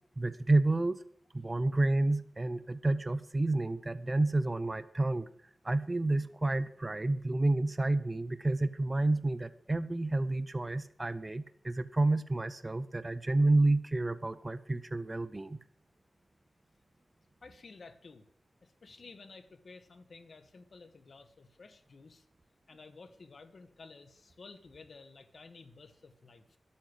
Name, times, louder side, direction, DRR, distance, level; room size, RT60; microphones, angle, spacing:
voice 1, 0.2-1.0 1.3-5.3 5.6-15.6, right 2 dB, 25° right, 12 dB, 0.7 m, -30 dB
voice 2, 17.4-18.3 18.6-22.2 22.7-26.6, left 4 dB, 60° left, 8 dB, 1.5 m, -53 dB
11.5 x 8.6 x 7.9 m, 0.62 s
wide cardioid pair, 100°, 0 cm